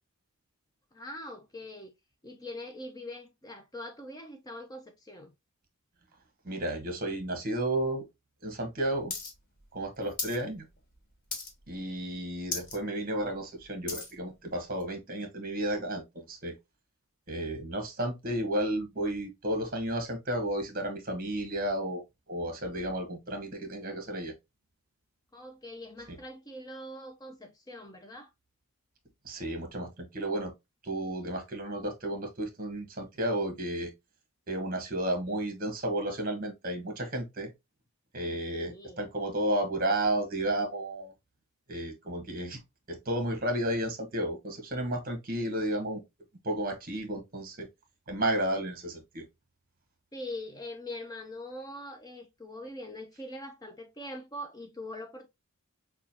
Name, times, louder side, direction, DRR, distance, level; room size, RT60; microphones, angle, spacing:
voice 1, 0.9-1.9 2.2-5.3 25.3-28.3 38.5-39.0 50.1-55.3, left 1 dB, 15° left, 0.5 m, -42 dB
voice 2, 6.4-8.0 8.4-9.1 9.7-10.7 11.7-16.5 17.3-22.0 22.3-24.3 26.1-26.2 29.2-30.5 30.8-33.9 34.5-37.5 38.1-41.1 41.7-42.6 42.9-46.0 46.4-47.7 48.1-49.2, right 1 dB, 40° right, 1.3 m, -32 dB
sound 1, 9.1-9.3 9.6-10.4 10.8-11.0 11.3-11.8 12.1-12.2 12.4-12.8 13.2-14.1 14.8-14.9, left 3 dB, 40° left, 1.3 m, -36 dB
6.0 x 2.3 x 2.8 m
head